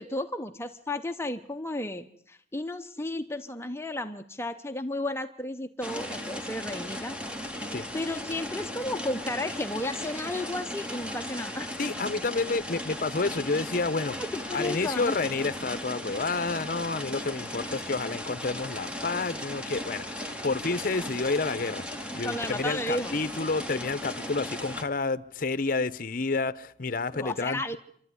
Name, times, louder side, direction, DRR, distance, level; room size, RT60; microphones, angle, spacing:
voice 1, 0.0-7.1 7.9-11.7 14.2-15.2 22.2-23.1 27.1-27.8, left 1 dB, 15° left, 0.8 m, -33 dB
sound 1, 5.8-24.8, left 1 dB, 5° right, 1.7 m, -37 dB
Screaming, 9.8-10.7 10.9-11.7 12.0-13.0, equal, 30° right, 7.7 m, -58 dB
voice 2, 11.8-14.2 14.5-21.8 22.1-27.8, left 3 dB, 55° left, 0.8 m, -30 dB
27.5 x 12.5 x 9.6 m
head